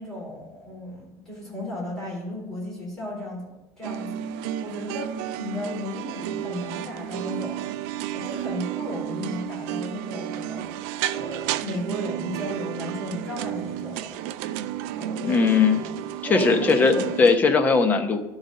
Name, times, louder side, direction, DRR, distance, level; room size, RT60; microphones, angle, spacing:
voice 1, 0.0-3.4 3.8-14.3 15.0-15.9 16.2-17.1, left 1 dB, 5° left, -6 dB, 3.9 m, -35 dB
sound 1, 3.8-17.4, right 12 dB, 70° right, 0.4 m, -32 dB
voice 2, 15.2-15.8 16.2-18.2, left 4 dB, 20° left, 6 dB, 0.8 m, -19 dB
12.0 x 4.0 x 6.4 m, 0.97 s
cardioid pair, 165°, 8 cm